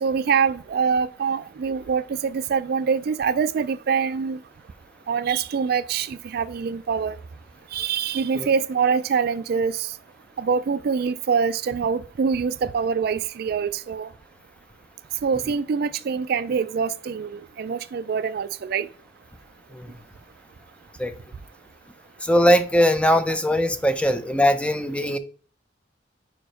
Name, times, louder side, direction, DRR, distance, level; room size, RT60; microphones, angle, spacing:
voice 1, 0.0-4.4 5.1-7.2 7.7-9.9 10.4-14.1 15.2-18.9 23.3-23.4, right 6 dB, 60° right, 0.4 m, -24 dB
voice 2, 22.2-25.2, equal, 5° left, 0.6 m, -20 dB
5.2 x 4.7 x 5.0 m
head